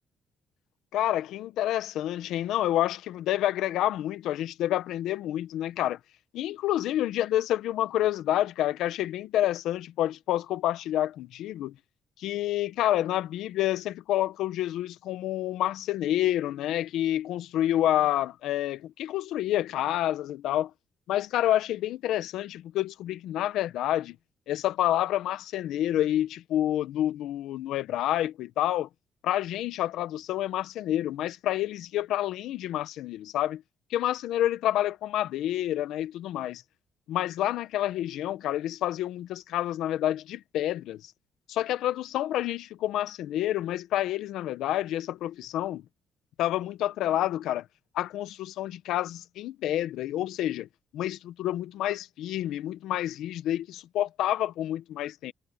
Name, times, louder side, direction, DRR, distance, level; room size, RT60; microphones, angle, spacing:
voice 1, 0.9-6.0 6.3-11.7 12.2-20.7 21.1-24.2 24.5-28.9 29.2-33.6 33.9-36.6 37.1-41.0 41.5-45.8 46.4-47.6 47.9-50.7 50.9-55.3, left 13 dB, 85° left, 1.2 m, -28 dB
cardioid pair, 90°, 0 cm